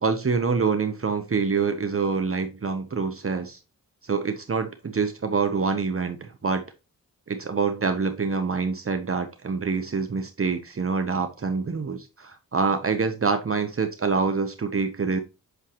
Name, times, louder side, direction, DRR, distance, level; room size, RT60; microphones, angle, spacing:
voice 1, 0.0-3.6 4.0-6.6 7.3-15.2, right 5 dB, 40° right, 1.0 m, -26 dB
8.2 x 6.3 x 3.0 m
cardioid pair, 60°, 36 cm